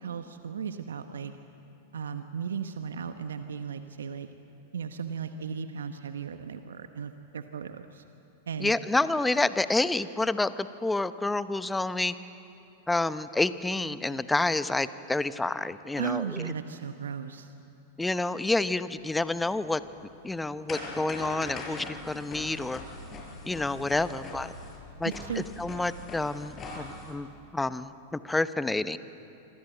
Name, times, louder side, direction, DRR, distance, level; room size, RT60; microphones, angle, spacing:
voice 1, 0.0-1.3 1.9-4.3 4.7-8.0 8.5-8.7 16.0-17.5 25.0-25.5, right 7 dB, 75° right, 9 dB, 1.0 m, -36 dB
voice 2, 8.6-12.1 12.9-16.5 18.0-19.8 20.2-22.8 23.4-24.5 25.0-25.1 25.6-27.3 27.5-29.0, left 2 dB, 10° left, 14 dB, 0.9 m, -28 dB
sound 1, 19.1-27.1, left 2 dB, 30° left, 6.7 m, -42 dB
26.0 x 25.5 x 8.0 m, 2.8 s
figure-of-eight pair, 95°, 0 cm